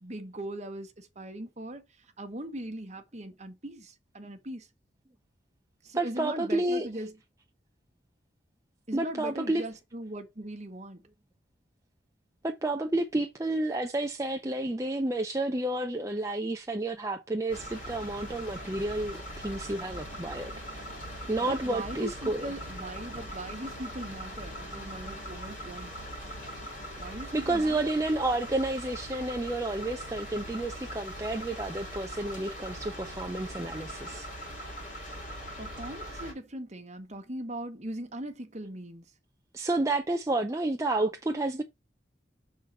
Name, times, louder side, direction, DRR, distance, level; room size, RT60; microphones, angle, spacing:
voice 1, 0.0-1.9 2.2-4.7 5.8-7.1 8.9-11.0 21.4-26.0 27.0-27.9 35.6-39.0, right 1 dB, 40° right, 1.3 m, -40 dB
voice 2, 5.9-6.9 8.9-9.6 12.4-20.9 21.3-22.5 27.3-34.3 39.5-41.6, right 2 dB, 15° right, 0.6 m, -30 dB
sound 1, 17.5-36.3, equal, 45° left, 3.4 m, -41 dB
6.4 x 4.0 x 5.2 m
head